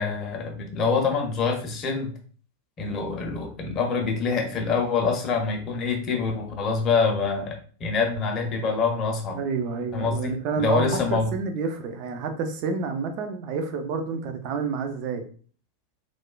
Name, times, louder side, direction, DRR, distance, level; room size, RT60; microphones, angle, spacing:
voice 1, 0.0-2.1 2.8-9.4 9.9-11.3, left 4 dB, 30° left, 3 dB, 0.6 m, -25 dB
voice 2, 9.3-15.2, right 5 dB, 40° right, 6 dB, 0.4 m, -29 dB
3.0 x 2.1 x 2.2 m, 0.43 s
figure-of-eight pair, 90°, 0 cm